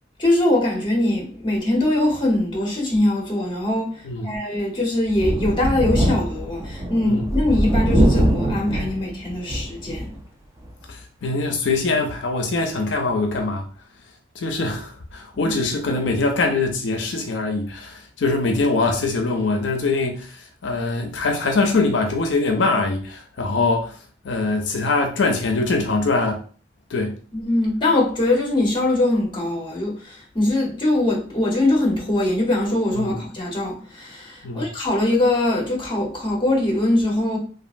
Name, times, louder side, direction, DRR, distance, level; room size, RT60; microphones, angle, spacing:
voice 1, 0.2-10.1 15.3-15.5 27.3-37.4, left 1 dB, 25° left, 0.9 m, -22 dB
Thunder, 5.1-10.2 10.6-10.7 12.1-12.2, right 1 dB, 15° right, 0.4 m, -22 dB
voice 2, 10.9-13.7 14.4-24.0 24.2-26.4 26.9-27.1 32.9-33.2 34.4-34.7, left 3 dB, 85° left, 0.5 m, -23 dB
3.0 x 2.4 x 2.5 m
head